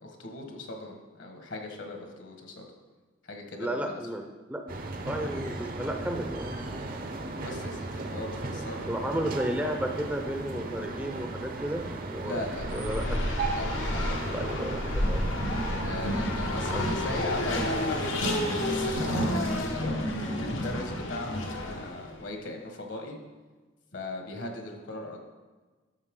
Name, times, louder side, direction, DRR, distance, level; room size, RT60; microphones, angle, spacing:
voice 1, 0.0-2.7 3.2-4.0 7.4-8.9 12.2-12.8 13.5-13.6 13.9-14.0 15.8-19.9 20.4-23.2 23.9-25.2, left 2 dB, 65° left, 2 dB, 1.6 m, -39 dB
voice 2, 3.6-4.6 5.0-6.5 8.9-12.4 12.7-13.2 14.3-15.6 16.0-16.1 16.7-16.9, right 1 dB, 10° right, 3 dB, 0.6 m, -33 dB
sound 1, 4.7-19.5, right 2 dB, 45° right, 0.8 m, -36 dB
Race car auto racing, 12.4-22.1, left 1 dB, 80° left, 1.3 m, -30 dB
12.0 x 6.7 x 3.8 m, 1.3 s
head